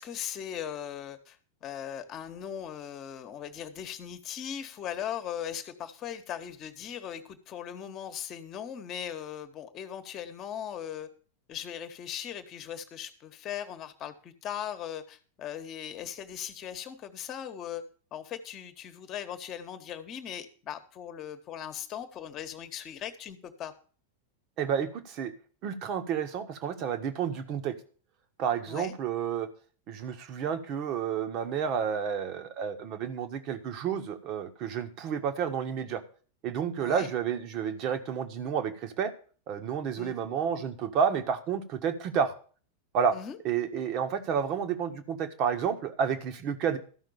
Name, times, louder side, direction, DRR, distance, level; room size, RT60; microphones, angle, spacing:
voice 1, 0.0-11.1 11.5-17.8 18.1-23.7 28.7-28.9 36.8-37.1 40.0-40.2 43.1-43.4, left 9 dB, 30° left, 9 dB, 1.4 m, -39 dB
voice 2, 24.6-25.3 25.6-27.7 28.4-29.5 29.9-36.0 36.4-39.1 39.5-42.3 42.9-43.1 43.4-46.8, right 7 dB, 40° right, 8 dB, 1.5 m, -30 dB
13.5 x 5.8 x 7.1 m, 0.41 s
figure-of-eight pair, 90°, 0 cm